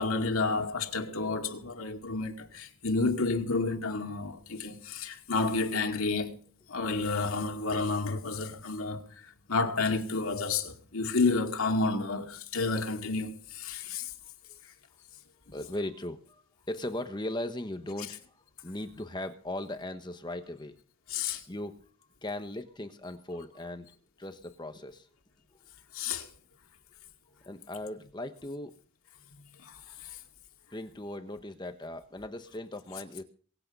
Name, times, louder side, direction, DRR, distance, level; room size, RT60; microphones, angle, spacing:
voice 1, 0.0-6.4 6.7-14.1 21.1-21.4 25.9-26.3 29.6-30.2, left 3 dB, 85° left, 2.3 m, -30 dB
voice 2, 15.4-20.7 21.5-25.1 27.4-28.7 30.7-33.2, left 1 dB, 20° left, 1.1 m, -38 dB
23.0 x 8.6 x 5.4 m
head